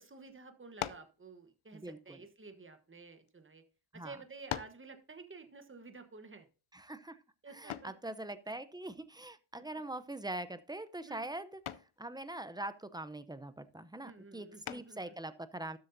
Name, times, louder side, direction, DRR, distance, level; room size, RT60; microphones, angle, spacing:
voice 1, 0.0-3.6 3.9-6.5 7.4-8.1 9.5-9.6 11.0-11.2 14.0-15.1, right 4 dB, 25° right, 7 dB, 1.1 m, -52 dB
sound 1, 0.8-1.2 2.1-3.3 4.0-4.1 4.5-4.9 7.7-8.0 9.9-10.3 10.7-11.0 11.7-12.0 14.6-15.1, left 10 dB, 80° left, 0.6 m, -42 dB
voice 2, 1.7-2.2 3.9-4.2 6.7-7.2 7.5-11.6 12.0-15.8, right 1 dB, 10° right, 12 dB, 0.6 m, -43 dB
12.5 x 7.8 x 2.6 m, 0.33 s
wide cardioid pair, 100°, 49 cm